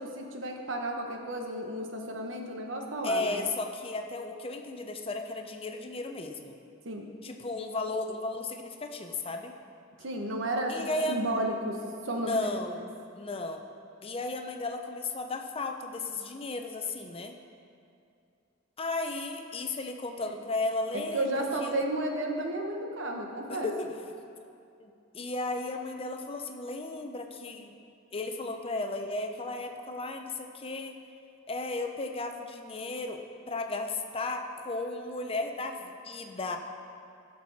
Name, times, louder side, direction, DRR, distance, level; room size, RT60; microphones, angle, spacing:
voice 1, 0.2-3.4 6.8-7.1 10.0-12.5 20.9-23.7, right 1 dB, 80° right, 2 dB, 1.2 m, -33 dB
voice 2, 3.0-6.6 7.2-9.5 10.7-11.2 12.1-12.8 13.1-13.6 14.0-17.3 18.8-21.8 23.5-23.9 24.8-27.7 28.1-31.0 31.5-33.2 33.5-36.6, left 2 dB, 30° left, 5 dB, 0.7 m, -34 dB
14.5 x 6.1 x 4.2 m, 2.5 s
head